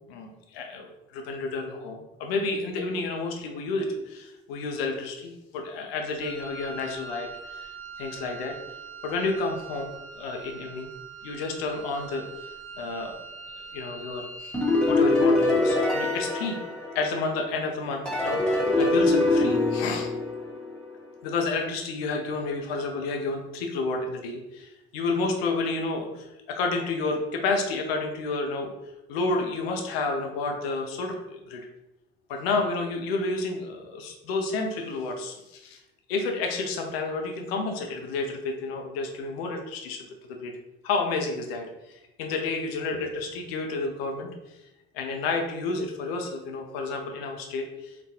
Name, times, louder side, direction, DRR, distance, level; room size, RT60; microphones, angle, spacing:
voice 1, 0.1-7.7 8.0-8.6 9.0-10.9 11.2-12.2 12.8-13.2 13.7-14.6 14.8-16.6 16.9-20.1 21.2-28.7 29.1-31.7 32.3-35.8 36.1-40.0 40.3-40.5 40.8-44.6 44.9-47.9, left 3 dB, 85° left, 3 dB, 0.5 m, -30 dB
Wind instrument woodwind instrument, 6.2-15.1, right 5 dB, 50° right, 0.8 m, -43 dB
sound 1, 14.5-17.4 18.1-20.9, left 2 dB, 5° left, 0.9 m, -24 dB
4.1 x 2.2 x 2.7 m, 0.92 s
hypercardioid pair, 55°, 30 cm